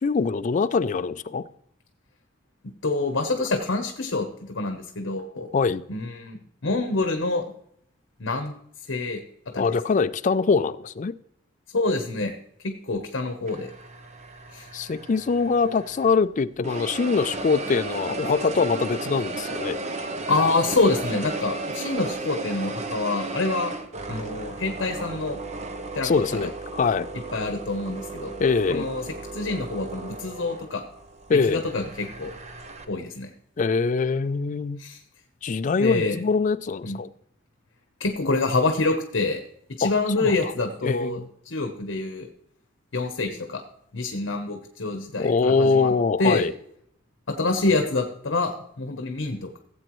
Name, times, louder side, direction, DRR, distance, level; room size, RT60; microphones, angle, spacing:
voice 1, 0.0-1.4 5.5-5.8 9.6-11.1 14.7-19.8 26.0-27.1 28.4-28.9 31.3-31.6 33.6-34.8 35.4-37.1 39.8-40.4 40.8-41.3 45.2-46.5, left 4 dB, 40° left, 0.4 m, -23 dB
voice 2, 2.8-5.5 5.9-7.5 8.2-8.5 8.9-9.2 9.5-9.7 11.7-12.3 12.6-13.7 14.5-14.7 20.3-23.7 24.1-25.4 25.9-26.5 27.3-28.3 28.7-30.8 31.4-32.3 32.9-33.3 34.8-35.0 35.8-36.2 36.8-37.0 38.0-39.4 39.8-42.3 42.9-43.6 43.9-45.9 46.2-46.5 47.3-49.6, left 3 dB, 75° left, 1.0 m, -26 dB
sound 1, 13.5-16.2 16.6-32.8, right 3 dB, 35° right, 0.8 m, -35 dB
16.0 x 7.8 x 3.1 m
head